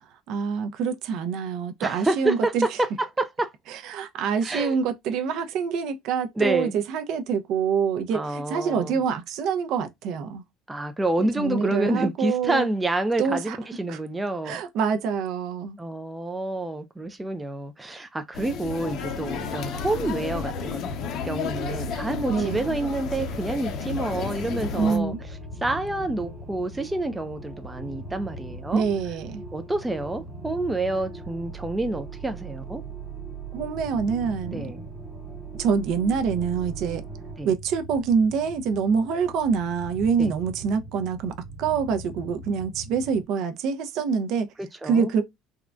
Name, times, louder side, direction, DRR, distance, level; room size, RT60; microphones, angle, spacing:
voice 1, 0.3-2.7 3.7-10.4 11.2-12.7 13.2-13.6 13.9-14.0 14.4-15.8 22.3-22.6 24.8-25.2 28.7-29.4 33.5-34.7 35.6-37.0 37.4-41.3 41.6-44.5 44.8-45.2, right 6 dB, 55° right, 0.5 m, -26 dB
voice 2, 1.8-3.5 4.4-4.8 6.4-6.8 8.1-9.0 10.7-14.6 15.8-20.9 21.2-25.1 25.6-28.8 29.5-32.8 34.5-34.9 37.4-37.5 40.2-40.3 44.6-45.1, right 2 dB, 10° right, 0.3 m, -28 dB
sound 1, 18.3-25.0, left 5 dB, 45° left, 0.6 m, -32 dB
sound 2, 21.4-37.4, right 5 dB, 10° left, 0.7 m, -42 dB
sound 3, 24.4-43.2, right 1 dB, 75° right, 1.0 m, -42 dB
3.6 x 2.1 x 2.3 m
cardioid pair, 150°, 0 cm